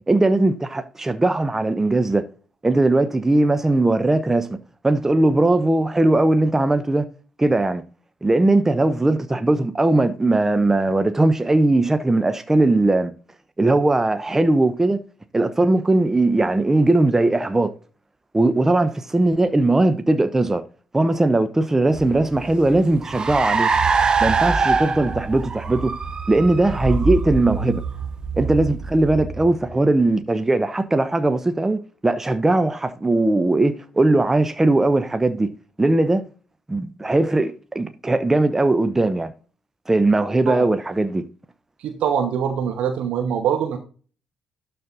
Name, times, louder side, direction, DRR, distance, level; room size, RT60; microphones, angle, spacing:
voice 1, 0.1-2.2 2.6-4.5 4.8-7.1 7.4-7.8 8.2-13.1 13.6-15.0 15.3-17.7 18.3-20.6 20.9-23.7 24.2-25.9 26.3-27.8 28.4-35.5 35.8-36.3 36.7-39.3 39.9-41.2, right 2 dB, 15° right, 0.9 m, -19 dB
Car, 22.0-29.7, right 4 dB, 35° right, 1.1 m, -24 dB
voice 2, 41.8-43.8, right 8 dB, 60° right, 1.1 m, -23 dB
12.0 x 4.3 x 3.9 m
figure-of-eight pair, 45°, 2 cm